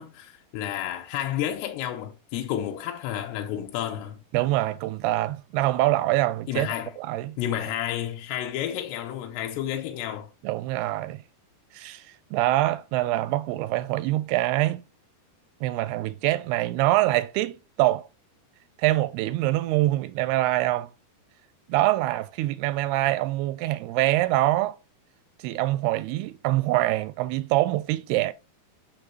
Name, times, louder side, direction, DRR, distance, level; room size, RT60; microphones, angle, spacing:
voice 1, 0.0-4.2 6.5-6.9 7.4-10.3, left 11 dB, 90° left, 2.8 m, -31 dB
voice 2, 4.3-6.7 7.0-7.4 10.4-11.2 11.7-14.8 15.6-18.1 18.8-20.9 21.7-24.8 25.4-28.3, right 16 dB, 85° right, 2.5 m, -24 dB
6.7 x 6.1 x 3.0 m
omnidirectional pair, 4.7 m